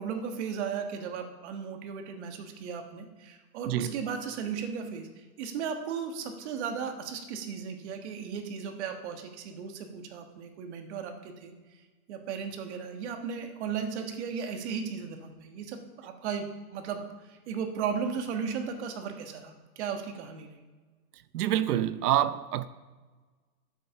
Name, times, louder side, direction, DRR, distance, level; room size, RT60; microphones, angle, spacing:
voice 1, 0.0-11.5 12.1-17.0 17.3-20.6, right 6 dB, 45° right, 1.4 m, -36 dB
voice 2, 3.6-4.0 21.3-22.6, right 11 dB, 80° right, 0.7 m, -27 dB
9.1 x 7.7 x 5.7 m
hypercardioid pair, 150°, 46 cm